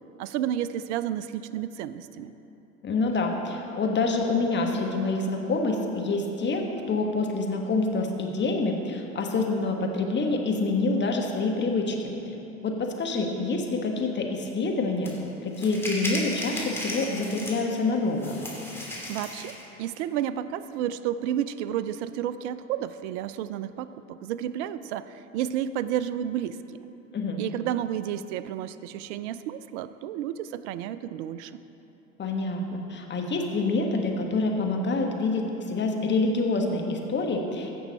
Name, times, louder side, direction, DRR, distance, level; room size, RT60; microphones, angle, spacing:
voice 1, 0.2-2.3 19.1-26.9 27.4-31.5, right 10 dB, 65° right, 14 dB, 0.5 m, -31 dB
voice 2, 2.8-12.1 12.6-15.1 15.4-18.3 27.1-27.4 32.2-37.7, left 3 dB, 30° left, 2 dB, 1.5 m, -27 dB
sound 1, 15.0-15.1 15.5-17.8 18.2-19.6, left 1 dB, 5° left, 2.5 m, -35 dB
15.0 x 6.3 x 4.2 m, 3.0 s
hypercardioid pair, 70°, 39 cm